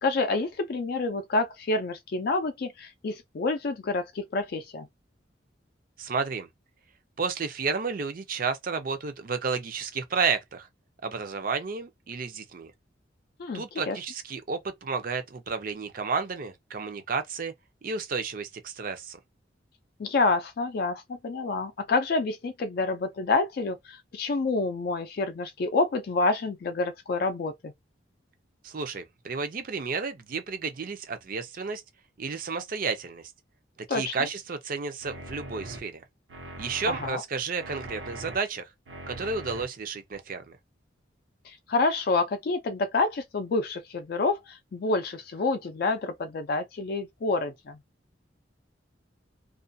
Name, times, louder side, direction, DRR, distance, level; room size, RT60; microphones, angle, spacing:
voice 1, 0.0-4.9 13.4-14.0 20.0-27.7 33.9-34.1 36.9-37.2 41.4-47.8, left 3 dB, 55° left, 0.4 m, -28 dB
voice 2, 6.0-6.5 7.2-10.7 11.0-12.7 13.5-17.5 17.8-19.2 28.6-31.8 32.2-33.3 33.9-36.0 36.6-38.7 39.1-40.6, right 5 dB, 50° right, 0.5 m, -32 dB
sound 1, 35.0-35.8 36.3-37.1 37.6-38.4 38.9-39.6 40.1-40.2, right 1 dB, 90° right, 0.9 m, -41 dB
2.4 x 2.2 x 2.6 m
head